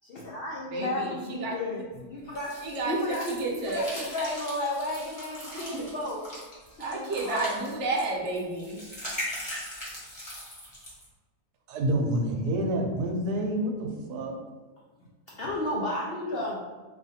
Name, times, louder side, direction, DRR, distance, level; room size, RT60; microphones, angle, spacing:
voice 1, 0.0-6.2 6.8-7.5 15.3-16.6, left 1 dB, 80° left, -4 dB, 0.5 m, -33 dB
voice 2, 0.7-1.6 2.6-3.8 5.5-5.8 6.8-8.8, right 2 dB, 55° right, -2 dB, 0.9 m, -31 dB
sound 1, 2.4-11.1, equal, 25° left, 1.1 m, -40 dB
voice 3, 11.7-14.4, right 1 dB, 80° right, 2 dB, 1.2 m, -28 dB
4.9 x 2.5 x 2.7 m, 1.3 s
omnidirectional pair, 1.7 m